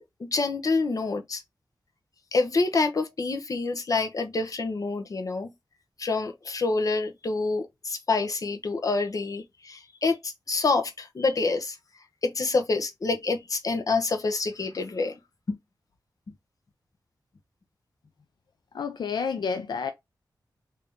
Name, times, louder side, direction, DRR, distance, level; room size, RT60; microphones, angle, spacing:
voice 1, 0.0-1.4 2.3-5.5 6.0-11.8 12.2-15.2 15.5-15.6, left 3 dB, 55° left, 0.9 m, -27 dB
voice 2, 18.7-19.9, left 5 dB, 80° left, 0.5 m, -29 dB
3.5 x 2.8 x 3.5 m
wide cardioid pair, 85°, 7 cm